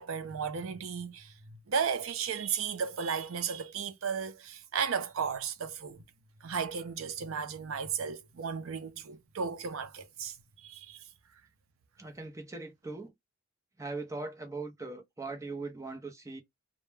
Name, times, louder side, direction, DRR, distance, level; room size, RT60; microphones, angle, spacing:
voice 1, 0.0-1.3 1.7-6.0 6.4-10.3 10.6-11.0, right 6 dB, 70° right, 0.5 m, -34 dB
voice 2, 12.0-13.1 13.8-16.4, right 3 dB, 15° right, 0.5 m, -40 dB
2.1 x 2.0 x 3.1 m
head